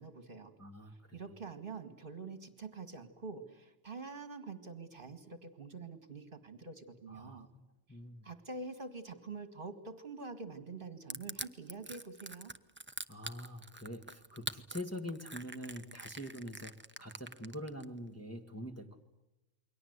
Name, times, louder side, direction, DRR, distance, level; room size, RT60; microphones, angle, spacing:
voice 1, 0.0-0.5 0.9-7.5 8.2-12.5, right 4 dB, 40° right, 9 dB, 2.1 m, -46 dB
voice 2, 0.6-1.2 7.1-7.6 7.9-8.2 13.1-16.7 17.0-19.0, left 1 dB, 10° left, 3 dB, 1.8 m, -44 dB
Crushing, 11.1-17.8, right 2 dB, 10° right, 0.7 m, -44 dB
29.0 x 23.0 x 8.1 m, 1.0 s
omnidirectional pair, 1.4 m